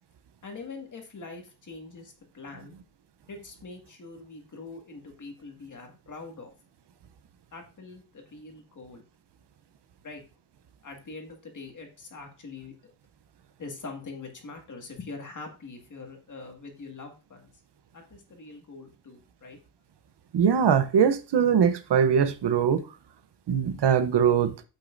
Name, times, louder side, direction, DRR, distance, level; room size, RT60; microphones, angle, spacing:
voice 1, 0.4-2.7 3.3-6.5 7.5-9.0 10.0-10.2 10.8-12.7 13.6-17.5 17.9-19.6, left 3 dB, 40° left, 1.9 m, -43 dB
voice 2, 20.3-22.8 23.5-24.5, right 7 dB, 65° right, 0.8 m, -22 dB
8.3 x 8.3 x 2.5 m
wide cardioid pair, 175°, 45 cm